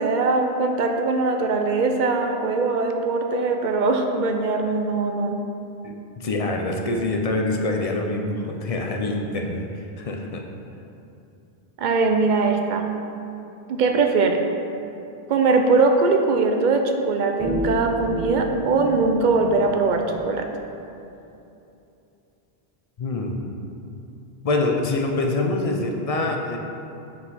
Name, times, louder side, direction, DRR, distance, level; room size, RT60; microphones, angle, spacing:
voice 1, 0.0-5.4 11.8-12.8 13.7-14.4 15.3-20.5, right 3 dB, 60° right, 4 dB, 0.6 m, -21 dB
voice 2, 5.8-10.4 23.0-23.4 24.4-26.6, left 2 dB, 50° left, 1 dB, 0.5 m, -25 dB
sound 1, 17.4-20.2, left 1 dB, 10° right, 0.5 m, -31 dB
5.5 x 4.8 x 4.0 m, 2.8 s
omnidirectional pair, 1.1 m